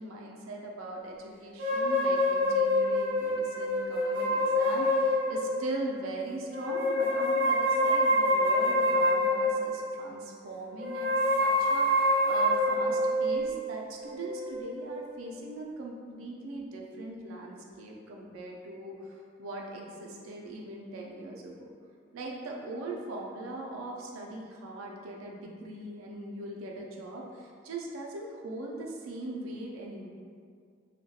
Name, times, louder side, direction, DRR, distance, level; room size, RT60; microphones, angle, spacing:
voice 1, 0.0-11.1 11.4-21.7 22.1-30.1, right 2 dB, 90° right, -1 dB, 0.4 m, -40 dB
sound 1, 1.6-5.8 6.5-9.9 10.8-15.2, left 1 dB, 45° right, 0.7 m, -27 dB
2.2 x 2.2 x 2.7 m, 2.2 s
head